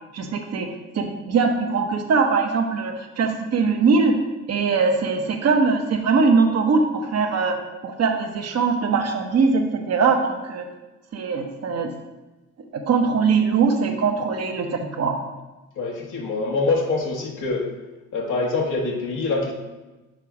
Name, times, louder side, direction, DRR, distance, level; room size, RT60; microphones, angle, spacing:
voice 1, 0.1-0.7 0.9-4.1 4.5-7.6 7.8-10.6 11.1-11.9 12.7-15.2, right 4 dB, 55° right, 4 dB, 1.1 m, -21 dB
voice 2, 15.8-17.7 18.1-19.5, left 3 dB, 85° left, -1 dB, 1.3 m, -24 dB
6.5 x 4.2 x 4.9 m, 1.1 s
cardioid pair, 90°, 30 cm